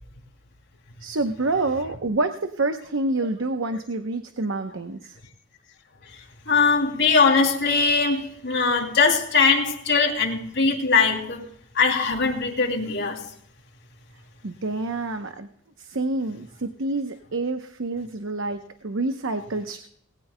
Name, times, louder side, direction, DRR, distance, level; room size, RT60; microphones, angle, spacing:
voice 1, 1.0-5.2 14.4-15.5 15.8-19.9, right 2 dB, 75° right, 0.8 m, -27 dB
voice 2, 6.1-11.5 11.7-13.3, left 4 dB, 60° left, 2.8 m, -21 dB
19.5 x 17.0 x 2.2 m
head